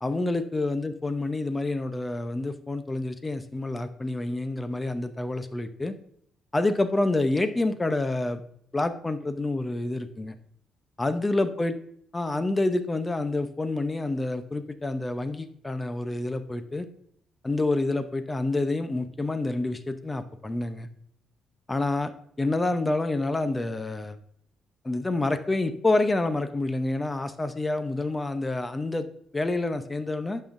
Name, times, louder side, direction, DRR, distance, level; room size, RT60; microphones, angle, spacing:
voice 1, 0.0-5.9 6.5-8.4 8.7-10.4 11.0-11.7 12.1-16.9 17.4-20.9 21.7-22.1 22.4-24.2 24.8-29.1 29.3-30.4, left 2 dB, 20° left, 10 dB, 0.7 m, -28 dB
10.5 x 5.6 x 2.6 m, 0.66 s
cardioid pair, 90°, 0 cm